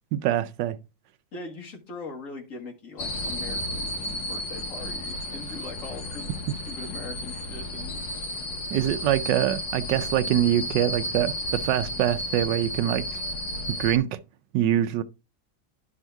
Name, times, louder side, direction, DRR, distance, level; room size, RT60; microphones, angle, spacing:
voice 1, 0.1-0.8 8.7-13.2 13.7-14.2 14.5-15.0, right 12 dB, 75° right, 1.1 m, -24 dB
voice 2, 1.3-8.1, left 3 dB, 40° left, 1.8 m, -41 dB
sound 1, 3.0-14.0, left 1 dB, 65° left, 1.6 m, -33 dB
10.5 x 3.6 x 4.5 m
omnidirectional pair, 2.2 m